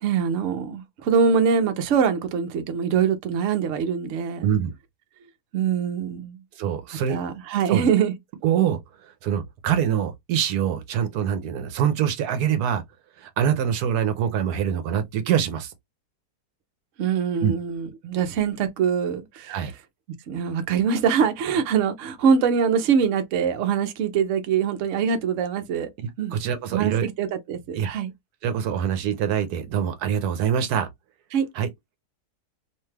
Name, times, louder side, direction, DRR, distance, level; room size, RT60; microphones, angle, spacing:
voice 1, 0.0-4.5 5.5-6.4 7.1-8.1 17.0-19.6 20.3-25.9 26.2-26.4 26.7-28.1 31.3-31.5, right 7 dB, 60° right, 0.9 m, -23 dB
voice 2, 4.4-4.7 6.6-7.2 7.7-7.9 8.4-12.8 13.2-15.7 17.4-17.5 19.5-19.7 26.0-27.1 27.7-27.9 28.4-30.9 31.5-31.7, right 8 dB, 80° right, 1.1 m, -24 dB
2.8 x 2.3 x 3.1 m
omnidirectional pair, 1.7 m